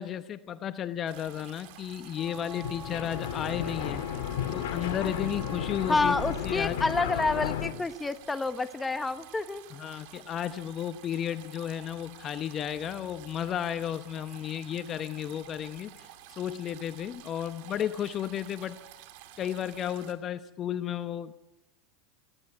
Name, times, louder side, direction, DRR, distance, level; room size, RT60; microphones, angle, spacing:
voice 1, 0.0-4.0 4.5-6.2 6.4-6.8 9.7-18.8 19.4-21.3, left 10 dB, 35° left, 11 dB, 0.9 m, -33 dB
sound 1, 1.1-20.1, right 12 dB, 65° right, 2.5 m, -50 dB
Wind instrument woodwind instrument, 2.1-6.4, right 3 dB, 10° right, 2.2 m, -46 dB
sound 2, 2.3-7.7, left 9 dB, 75° left, 1.9 m, -33 dB
voice 2, 5.9-9.7, left 3 dB, 10° left, 11 dB, 1.1 m, -28 dB
19.0 x 15.5 x 8.9 m, 0.96 s
hypercardioid pair, 110°, 0 cm